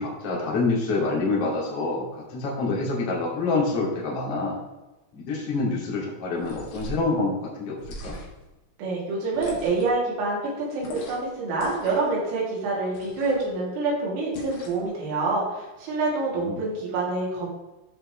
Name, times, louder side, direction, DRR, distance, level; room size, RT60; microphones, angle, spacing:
voice 1, 0.0-4.6 5.1-8.2 16.3-16.6, left 3 dB, 40° left, -4 dB, 2.5 m, -27 dB
sound 1, 6.3-7.1 7.8-8.5 9.3-10.0 10.8-11.3 11.6-12.1 12.9-13.5 14.3-14.9, left 2 dB, 60° left, 3.5 m, -40 dB
voice 2, 8.8-17.5, right 3 dB, 85° right, -4 dB, 5.6 m, -27 dB
14.0 x 5.8 x 3.3 m, 1.1 s
omnidirectional pair, 6.0 m